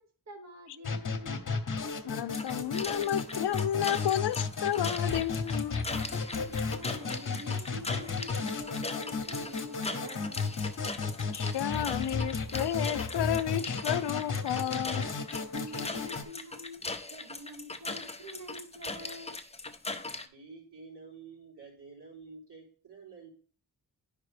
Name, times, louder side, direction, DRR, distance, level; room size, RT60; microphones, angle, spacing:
voice 1, 0.0-1.4 6.3-10.6 15.5-19.4, equal, 40° right, 0.9 m, -47 dB
sound 1, 0.8-16.2, left 4 dB, 50° left, 1.0 m, -34 dB
voice 2, 2.0-5.8 11.3-15.4, left 11 dB, 80° left, 0.5 m, -32 dB
sound 2, 2.3-20.3, left 3 dB, 15° left, 0.6 m, -40 dB
voice 3, 20.2-23.3, right 4 dB, 75° right, 3.7 m, -50 dB
10.0 x 5.1 x 3.3 m
wide cardioid pair, 95°, 40 cm